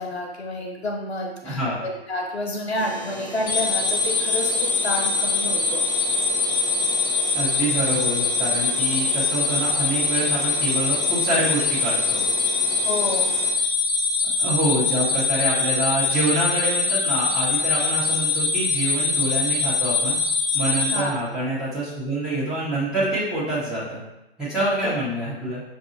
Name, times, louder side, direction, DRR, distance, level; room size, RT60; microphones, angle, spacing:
voice 1, 0.0-5.8 12.8-13.3 20.9-21.1 24.6-24.9, left 1 dB, 80° left, 0 dB, 1.1 m, -29 dB
voice 2, 1.4-1.8 7.3-12.2 14.4-20.2 20.5-24.0 24.4-25.6, right 1 dB, ahead, -10 dB, 1.2 m, -26 dB
sound 1, 2.7-13.5, right 2 dB, 25° right, 0.8 m, -37 dB
sound 2, 3.5-21.0, left 4 dB, 35° left, 0.7 m, -23 dB
6.2 x 2.6 x 2.8 m, 0.93 s
figure-of-eight pair, 125°, 32 cm